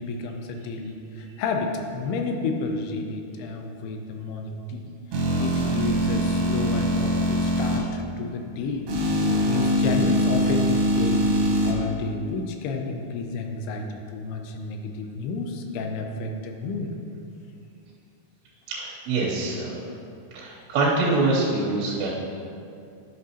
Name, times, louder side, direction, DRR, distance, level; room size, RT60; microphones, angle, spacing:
voice 1, 0.0-4.9 5.4-8.9 9.4-11.3 11.7-16.9, left 3 dB, 80° left, 4 dB, 2.6 m, -31 dB
sound 1, 5.1-7.8 8.9-11.7, equal, 65° right, 1.9 m, -23 dB
voice 2, 18.7-19.8 20.3-22.1, right 3 dB, 90° right, -5 dB, 3.1 m, -24 dB
10.5 x 5.9 x 2.8 m, 2.4 s
omnidirectional pair, 4.8 m